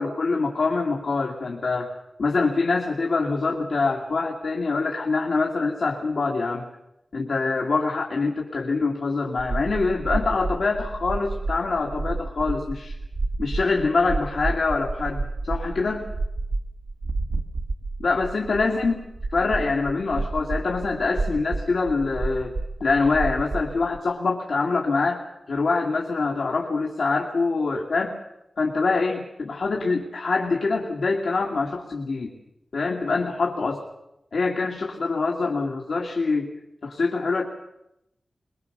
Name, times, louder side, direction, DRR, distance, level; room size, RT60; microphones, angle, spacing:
voice 1, 0.0-1.9 2.2-6.7 7.1-13.0 13.4-16.0 18.0-19.0 19.3-22.5 22.8-28.2 28.6-32.3 32.7-33.8 34.3-36.5 36.8-37.4, left 3 dB, 85° left, -1 dB, 2.2 m, -25 dB
sound 1, 9.4-24.0, right 3 dB, 90° right, 1.5 m, -30 dB
22.5 x 22.0 x 6.7 m, 0.86 s
wide cardioid pair, 105°, 0 cm